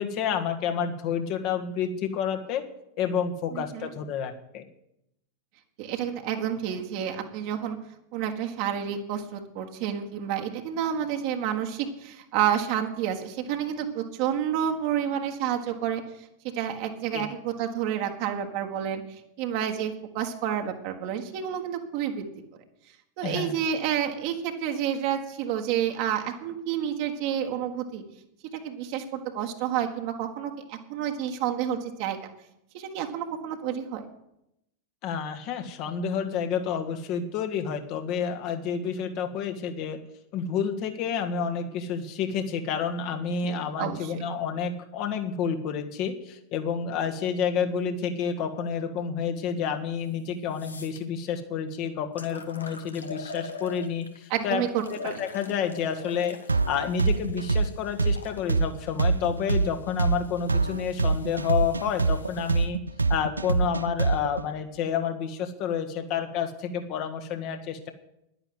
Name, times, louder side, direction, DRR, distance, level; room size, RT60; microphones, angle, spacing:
voice 1, 0.0-2.7 3.0-4.6 17.1-17.3 23.2-23.6 35.0-40.0 40.3-54.6 54.9-56.4 56.7-62.8 63.1-67.9, left 7 dB, 40° left, 6 dB, 1.5 m, -29 dB
voice 2, 3.5-3.9 5.8-7.8 8.1-16.0 16.4-22.3 23.2-28.0 28.5-32.3 32.7-34.1 43.4-44.2 54.3-55.2, right 9 dB, 45° right, 4 dB, 1.5 m, -29 dB
sound 1, 50.0-50.1 50.5-51.0 51.7-51.8 52.2-54.3 54.8-58.4 59.2-62.7, left 3 dB, 75° left, 1.3 m, -44 dB
sound 2, 56.5-64.4, right 3 dB, 80° right, 0.4 m, -24 dB
10.5 x 10.0 x 7.9 m, 0.82 s
figure-of-eight pair, 90°, 0 cm